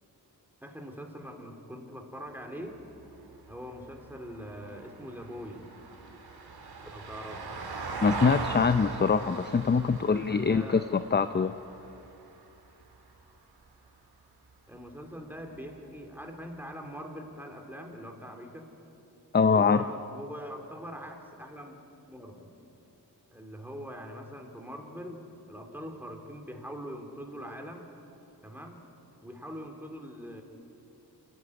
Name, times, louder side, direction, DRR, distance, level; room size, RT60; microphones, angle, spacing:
voice 1, 0.6-2.8 3.5-5.7 6.9-7.4 9.8-10.9 14.7-18.7 19.5-21.8 22.1-22.4 23.3-27.9 28.4-28.9 29.2-30.4, equal, 5° right, 3 dB, 3.0 m, -42 dB
Vehicle, 2.8-13.2 15.5-15.6, right 3 dB, 65° right, 2.6 m, -40 dB
voice 2, 8.0-11.5 19.3-19.8, left 5 dB, 25° left, 11 dB, 0.5 m, -24 dB
28.0 x 15.0 x 9.8 m, 3.0 s
wide cardioid pair, 105°, 41 cm